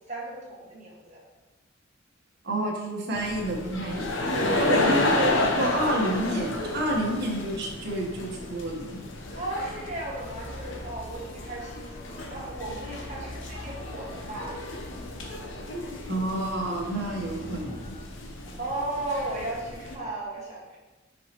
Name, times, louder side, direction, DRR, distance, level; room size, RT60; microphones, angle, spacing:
voice 1, 0.1-1.2 4.3-4.9 9.3-14.6 18.4-20.8, right 2 dB, 40° right, -5 dB, 1.8 m, -35 dB
voice 2, 2.4-4.3 4.6-5.3 5.6-9.0 16.1-18.0, right 1 dB, 60° right, -1 dB, 1.3 m, -29 dB
sound 1, 3.1-20.0, left 2 dB, 75° left, 0.9 m, -32 dB
sound 2, 9.2-18.1, left 1 dB, 30° left, 0.4 m, -45 dB
6.5 x 5.4 x 3.0 m, 1.1 s
head